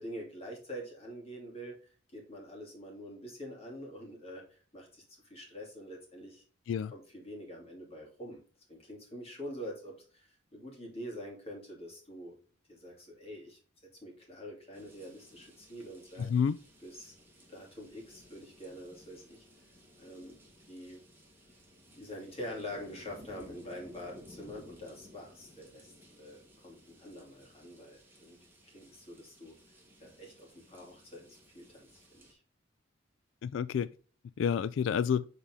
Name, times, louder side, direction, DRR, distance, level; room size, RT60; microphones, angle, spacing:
voice 1, 0.0-6.4 6.9-8.4 8.7-12.3 12.7-13.6 14.0-16.3 16.8-17.1 17.5-19.4 20.0-21.0 21.9-28.4 28.6-29.6 30.0-32.4, equal, 30° left, 2.7 m, -46 dB
sound 1, 14.7-32.3, left 1 dB, 10° right, 1.7 m, -58 dB
voice 2, 16.2-16.6 33.4-33.9 34.4-35.2, left 7 dB, 75° left, 0.3 m, -29 dB
7.1 x 4.1 x 3.6 m
head